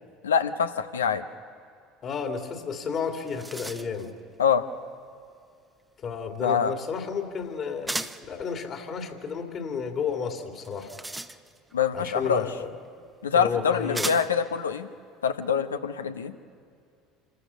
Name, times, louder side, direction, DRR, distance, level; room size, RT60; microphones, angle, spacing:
voice 1, 0.2-1.2 4.4-4.7 6.4-6.7 11.7-12.4 13.2-14.9 15.2-16.3, left 7 dB, 90° left, 9 dB, 0.8 m, -25 dB
voice 2, 2.0-4.1 6.0-8.0 8.3-10.9 11.9-12.7 13.3-14.1, left 6 dB, 45° left, 5 dB, 2.5 m, -32 dB
sound 1, 2.7-2.8 3.1-4.1 7.9-8.3 10.6-11.8 12.9-13.0 13.9-14.5, right 2 dB, 10° right, 0.8 m, -35 dB
27.0 x 14.5 x 7.0 m, 2.3 s
hypercardioid pair, 70°, 0 cm